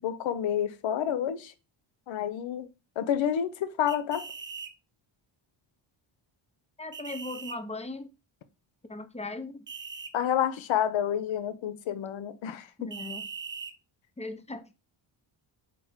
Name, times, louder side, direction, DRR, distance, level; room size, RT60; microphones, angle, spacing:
voice 1, 0.0-1.5 2.1-2.7 3.0-4.2 10.1-12.9, left 9 dB, 65° left, 0.8 m, -29 dB
sound 1, 3.9-4.7 6.9-7.6 9.7-10.1 12.9-13.7, right 5 dB, 25° right, 0.6 m, -40 dB
voice 2, 6.8-8.1 8.9-9.7 12.8-13.3 14.2-14.6, left 2 dB, 15° left, 0.7 m, -38 dB
4.1 x 2.8 x 3.6 m
supercardioid pair, 60°, 50 cm